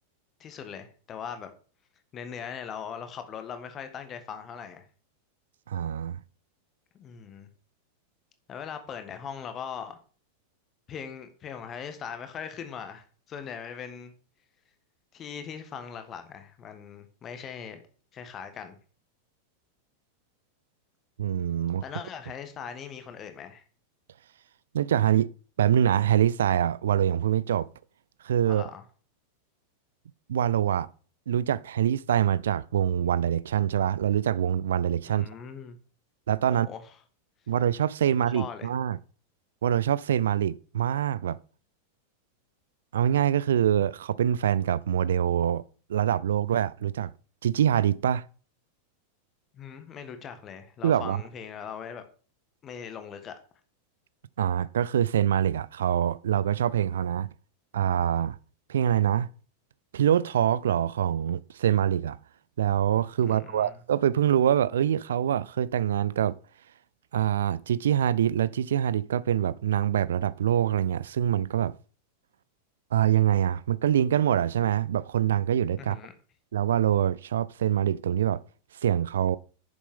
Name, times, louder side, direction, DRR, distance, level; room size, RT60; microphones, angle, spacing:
voice 1, 0.4-1.5 2.1-4.8 7.0-7.5 8.5-10.0 10.9-14.1 15.1-17.8 18.1-18.8 21.8-23.6 28.4-28.8 35.1-35.8 36.5-36.8 38.3-38.7 49.5-52.0 52.6-53.3 63.2-63.8 75.8-76.1, left 7 dB, 30° left, 1.5 m, -40 dB
voice 2, 5.7-6.2 21.2-21.8 24.7-25.3 25.6-27.7 28.2-28.6 30.3-30.9 31.3-35.3 36.3-36.7 37.5-39.0 39.6-41.4 42.9-45.6 45.9-47.1 47.4-48.3 50.8-51.2 54.4-57.3 57.7-58.4 58.7-59.3 59.9-62.2 62.6-66.4 67.1-71.7 72.9-76.0 76.5-78.4 78.8-79.4, right 10 dB, 60° right, 0.3 m, -25 dB
9.9 x 7.1 x 3.7 m
figure-of-eight pair, 90°, 0 cm